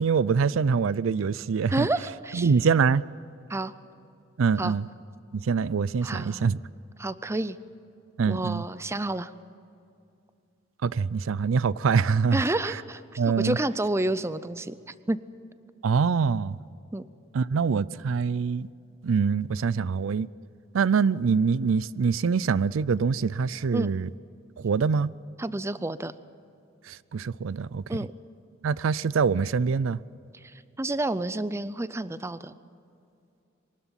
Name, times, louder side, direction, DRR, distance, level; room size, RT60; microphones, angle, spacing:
voice 1, 0.0-1.9 2.3-3.1 4.4-4.9 5.3-6.6 8.2-8.6 10.8-12.4 12.7-12.8 13.2-13.6 15.8-16.6 17.3-18.7 19.0-20.3 20.7-24.1 24.6-25.1 26.9-27.8 28.6-30.0, right 5 dB, 85° right, 0.4 m, -24 dB
voice 2, 1.7-2.5 3.5-3.7 4.6-4.8 6.0-6.4 7.0-7.6 8.3-9.3 12.3-14.7 15.1-15.2 16.9-17.0 23.7-23.9 25.4-26.1 27.9-28.1 30.4-32.6, right 2 dB, 15° right, 0.5 m, -29 dB
23.5 x 13.0 x 8.9 m
head